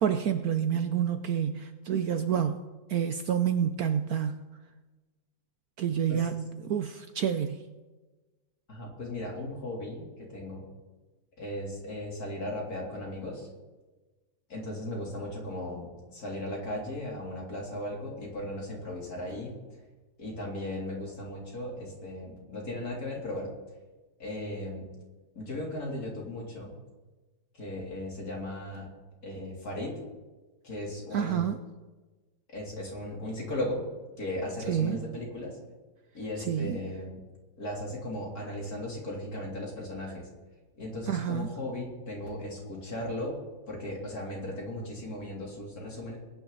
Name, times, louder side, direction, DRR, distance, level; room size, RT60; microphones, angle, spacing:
voice 1, 0.0-2.6 2.9-4.4 5.8-7.6 31.1-31.6 34.7-35.1 36.4-36.8 41.1-41.5, right 8 dB, 65° right, 9 dB, 1.0 m, -28 dB
voice 2, 8.7-10.7 11.4-13.5 14.5-19.5 20.2-23.5 24.2-24.9 25.4-26.8 27.6-28.9 29.2-29.9 30.6-31.5 32.5-33.9 34.2-35.6 36.1-37.2 37.6-40.3 40.8-43.4 43.7-46.2, left 1 dB, 50° left, -2 dB, 3.9 m, -36 dB
21.5 x 10.0 x 4.1 m, 1.2 s
omnidirectional pair, 2.0 m